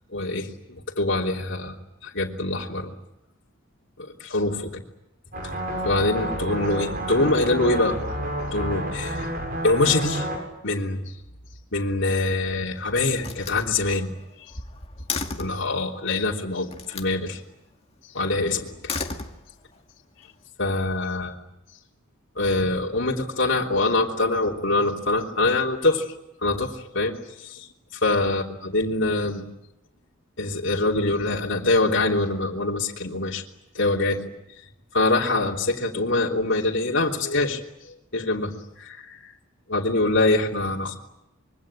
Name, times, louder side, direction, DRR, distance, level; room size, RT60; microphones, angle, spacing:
voice 1, 0.1-1.7 2.0-2.9 4.2-4.8 5.8-8.0 8.5-9.3 9.6-10.3 10.6-11.0 11.7-14.1 15.4-17.4 18.1-18.7 20.6-21.3 22.4-26.1 26.4-27.7 28.0-29.4 30.4-33.4 33.7-34.3 34.9-37.6 38.1-38.5 38.8-39.2 39.7-41.0, left 2 dB, 60° left, -2 dB, 3.3 m, -24 dB
sound 1, 5.3-10.4, right 1 dB, 45° right, 7.2 m, -30 dB
Slam, 12.1-12.7 13.2-15.7 16.7-17.2 18.7-19.8, left 4 dB, 30° left, 2.1 m, -34 dB
26.0 x 23.5 x 9.0 m, 0.90 s
head